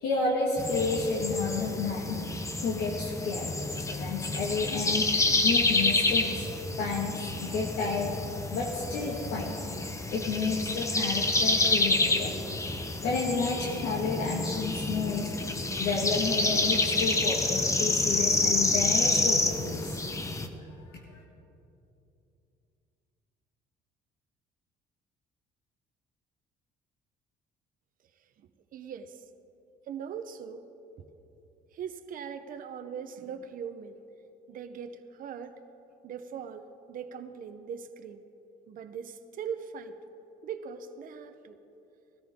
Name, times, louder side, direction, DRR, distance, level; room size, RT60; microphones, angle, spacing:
voice 1, 0.0-2.2 2.6-3.5 3.9-6.5 6.8-8.2 8.5-9.6 10.1-12.4 13.0-15.3 15.8-20.0 20.8-20.9 21.1-21.2, left 4 dB, 80° left, -2 dB, 1.7 m, -31 dB
sound 1, 0.6-20.5, left 2 dB, 20° left, 0.9 m, -28 dB
voice 2, 28.7-29.2 29.9-30.7 31.0-31.1 31.7-34.0 34.5-35.6 36.0-38.2 38.7-40.0 40.4-41.6, right 7 dB, 55° right, 8 dB, 0.8 m, -40 dB
19.0 x 13.5 x 3.7 m, 2.9 s
cardioid pair, 110°, 17 cm